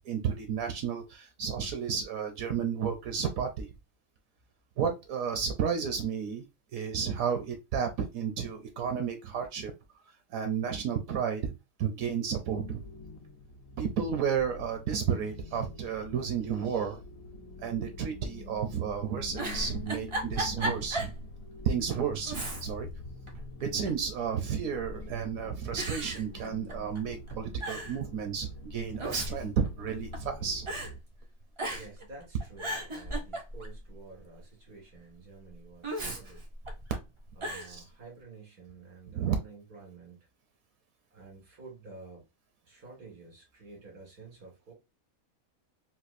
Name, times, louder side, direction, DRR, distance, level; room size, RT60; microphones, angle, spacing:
voice 1, 0.0-3.7 4.8-6.4 6.7-9.7 10.3-11.5 11.8-12.9 13.8-17.0 17.6-21.1 21.6-22.9 23.6-30.7 37.6-37.8 39.1-39.4, right 7 dB, 75° right, 1.0 m, -32 dB
sound 1, 12.6-31.0, left 3 dB, 70° left, 1.0 m, -46 dB
Giggle, 19.3-21.2 21.6-21.7 22.2-22.9 23.3-24.1 24.8-25.2 25.8-27.0 27.3-27.4 27.6-28.0 28.8-30.3 30.7-30.9 31.6-32.0 32.4-33.8 35.8-37.0 37.4-37.7, right 1 dB, 40° right, 0.4 m, -36 dB
voice 2, 31.7-36.5 37.4-40.3 41.1-42.3 42.7-44.7, right 4 dB, 90° right, 2.2 m, -50 dB
4.1 x 2.3 x 2.5 m
omnidirectional pair, 1.5 m